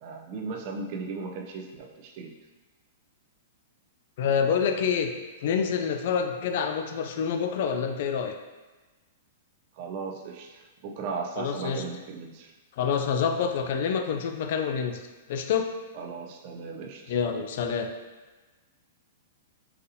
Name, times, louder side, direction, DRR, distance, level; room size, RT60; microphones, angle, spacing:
voice 1, 0.0-2.3 9.8-12.5 15.9-17.2, right 4 dB, 40° right, 3 dB, 0.4 m, -37 dB
voice 2, 4.2-5.1 5.4-8.3 11.4-11.8 12.8-15.7 17.1-17.9, left 7 dB, 50° left, 6 dB, 0.3 m, -27 dB
3.9 x 2.6 x 2.7 m, 1.2 s
hypercardioid pair, 160°, 0 cm